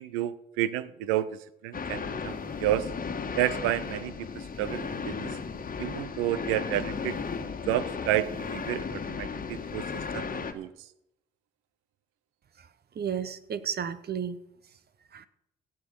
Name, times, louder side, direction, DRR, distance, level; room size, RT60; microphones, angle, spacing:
voice 1, 0.0-2.9 3.4-5.3 5.8-7.2 7.7-10.7, right 13 dB, 85° right, 17 dB, 0.6 m, -31 dB
sound 1, 1.7-10.5, left 5 dB, 45° left, 1.4 m, -35 dB
voice 2, 12.6-14.4 14.7-14.8 15.1-15.3, right 8 dB, 55° right, 15 dB, 1.0 m, -33 dB
16.5 x 6.8 x 5.4 m, 0.81 s
hypercardioid pair, 45°, 20 cm